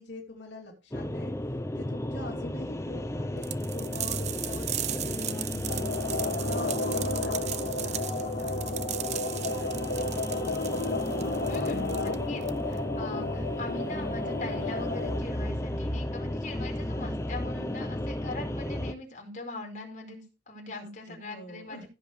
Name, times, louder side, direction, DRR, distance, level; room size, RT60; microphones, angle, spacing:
voice 1, 0.0-1.3 1.8-5.7 6.3-9.8 20.7-21.9, left 1 dB, 85° left, -1 dB, 3.1 m, -44 dB
sound 1, 0.9-18.9, left 1 dB, 15° left, 0.7 m, -34 dB
sound 2, 3.4-12.8, right 11 dB, 40° right, 0.6 m, -37 dB
sound 3, 5.7-15.2, left 3 dB, 70° left, 2.1 m, -33 dB
voice 2, 11.4-21.9, left 2 dB, 45° left, 1 dB, 4.7 m, -41 dB
16.0 x 7.8 x 3.3 m, 0.31 s
head